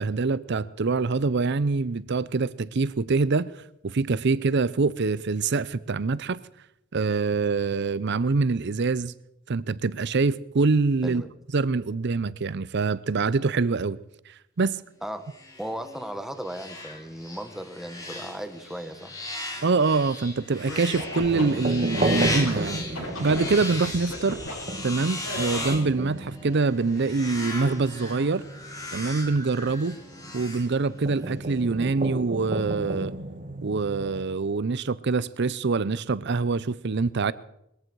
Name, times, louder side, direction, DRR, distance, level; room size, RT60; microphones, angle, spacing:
voice 1, 0.0-3.5 3.8-6.4 6.9-9.1 9.5-11.2 11.5-14.0 14.6-14.8 19.6-22.8 23.2-24.4 24.8-28.4 28.9-30.0 30.3-33.1 33.6-37.3, right 4 dB, 55° right, 0.6 m, -25 dB
voice 2, 11.0-11.3 15.0-15.2 15.6-19.1, equal, ahead, 1.2 m, -36 dB
sound 1, 15.3-31.2, left 2 dB, 15° left, 2.7 m, -37 dB
Scratching (performance technique), 20.6-22.5 22.9-24.5 25.2-25.9, left 1 dB, 75° left, 7.2 m, -35 dB
sound 2, 21.3-34.2, right 2 dB, 40° right, 1.2 m, -34 dB
21.0 x 14.5 x 4.7 m
head